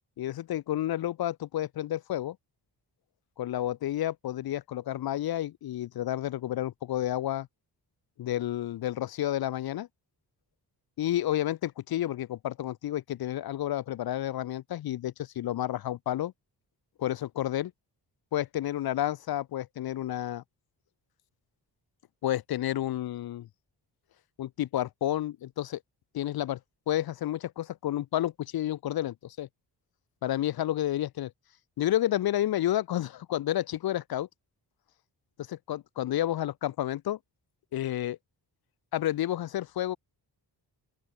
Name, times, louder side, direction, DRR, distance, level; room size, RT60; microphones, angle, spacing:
voice 1, 0.2-2.4 3.4-7.5 8.2-9.9 11.0-16.3 17.0-17.7 18.3-20.4 22.2-23.5 24.4-25.8 26.1-26.6 26.9-29.5 30.2-31.3 31.8-34.3 35.5-37.2 37.7-38.2 38.9-40.0, left 13 dB, 60° left, 0.5 m, -30 dB
open air
cardioid pair, 80°, 43 cm